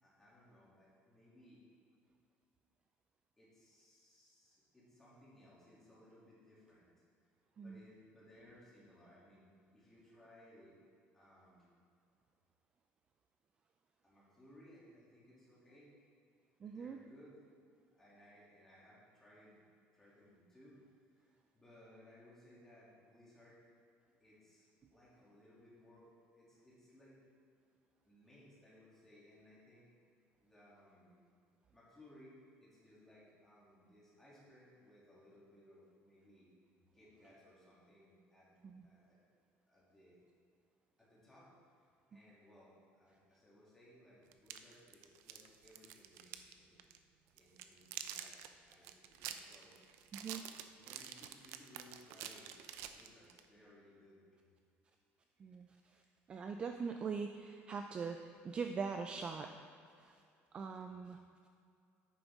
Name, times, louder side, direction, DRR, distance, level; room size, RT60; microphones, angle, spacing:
voice 1, 0.0-1.6 3.4-6.9 7.5-10.8 11.1-11.7 14.0-15.9 16.6-17.4 17.9-19.6 19.9-20.8 21.0-23.6 24.2-27.2 28.0-29.9 30.4-31.1 31.7-36.5 36.9-38.5 38.8-39.2 39.7-40.2 41.0-41.8 42.1-46.8 47.3-49.7 50.8-54.4, left 1 dB, 10° left, -8 dB, 2.6 m, -62 dB
voice 2, 16.6-17.0 38.6-38.9 50.1-50.4 55.4-55.7 56.3-59.5 60.0-60.1 60.5-61.2, right 5 dB, 25° right, 5 dB, 0.3 m, -42 dB
sound 1, 44.3-46.5 46.8-47.0 47.4-53.5, right 10 dB, 75° right, 0.5 m, -48 dB
9.9 x 9.0 x 3.6 m, 2.4 s
cardioid pair, 175°, 4 cm